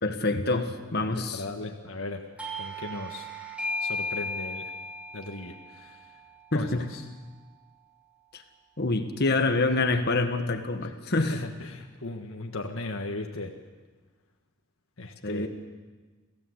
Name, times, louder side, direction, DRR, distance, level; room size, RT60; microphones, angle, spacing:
voice 1, 0.0-1.4 6.5-6.8 8.3-8.4 8.8-11.4 15.2-15.5, left 2 dB, 55° left, 6 dB, 1.6 m, -26 dB
voice 2, 0.9-2.2 2.6-3.3 3.8-4.7 5.1-6.0 6.5-7.0 10.8-10.9 11.2-13.5 15.0-15.5, left 2 dB, 90° left, 3 dB, 1.6 m, -37 dB
Doorbell, 2.4-7.7, left 1 dB, 5° right, 2.7 m, -36 dB
27.5 x 16.0 x 8.1 m, 1.3 s
head